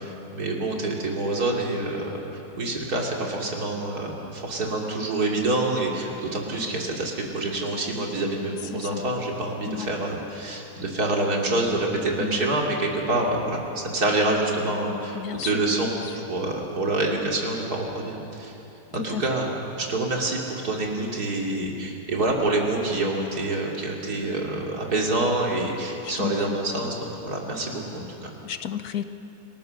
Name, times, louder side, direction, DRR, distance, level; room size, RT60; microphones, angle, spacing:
voice 1, 0.0-16.0 16.3-18.5 18.9-28.3, right 2 dB, 70° right, -1 dB, 3.5 m, -27 dB
voice 2, 12.2-12.5 15.1-15.5 19.0-19.2 26.2-26.6 28.4-29.0, left 9 dB, 75° left, 10 dB, 1.4 m, -32 dB
28.5 x 19.5 x 6.6 m, 2.9 s
omnidirectional pair, 1.7 m